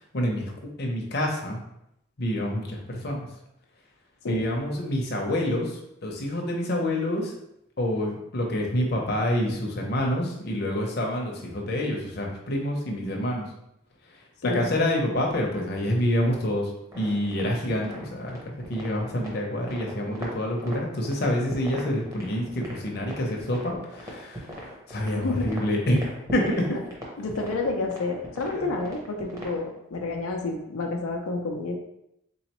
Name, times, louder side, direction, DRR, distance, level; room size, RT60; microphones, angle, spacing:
voice 1, 0.1-0.5 0.8-1.6 2.2-3.3 4.3-7.3 7.8-13.5 14.4-26.7 28.5-28.7, left 1 dB, 50° left, 0 dB, 0.7 m, -27 dB
sound 1, 16.9-29.7, equal, 15° right, 0.7 m, -40 dB
voice 2, 25.1-25.5 26.7-26.8 27.2-31.8, left 3 dB, 90° left, 2 dB, 0.5 m, -30 dB
3.8 x 3.1 x 2.9 m, 0.80 s
head